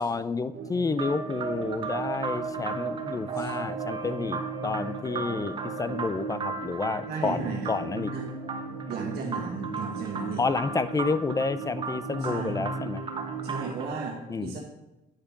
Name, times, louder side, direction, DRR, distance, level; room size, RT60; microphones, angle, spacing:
voice 1, 0.0-8.1 10.4-13.0 14.3-14.6, left 4 dB, 20° left, 14 dB, 0.4 m, -30 dB
sound 1, 0.5-13.7, right 5 dB, 55° right, 1.1 m, -36 dB
sound 2, 0.9-13.9, right 4 dB, 30° right, 1.1 m, -38 dB
voice 2, 7.1-7.7 8.1-8.3 8.9-10.4 12.2-12.6 13.4-14.6, right 5 dB, 70° right, -1 dB, 1.5 m, -35 dB
8.9 x 5.1 x 5.9 m, 0.95 s
cardioid pair, 110°, 17 cm